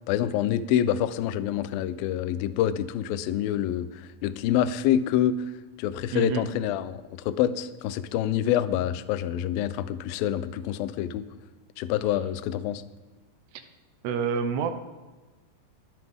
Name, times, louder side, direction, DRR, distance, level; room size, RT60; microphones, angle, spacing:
voice 1, 0.1-5.4 5.8-11.3 11.8-12.8, left 11 dB, 80° left, 13 dB, 2.1 m, -26 dB
voice 2, 6.1-6.5 14.0-14.7, right 6 dB, 80° right, 7 dB, 2.8 m, -27 dB
23.0 x 7.9 x 3.6 m, 1.2 s
omnidirectional pair, 4.8 m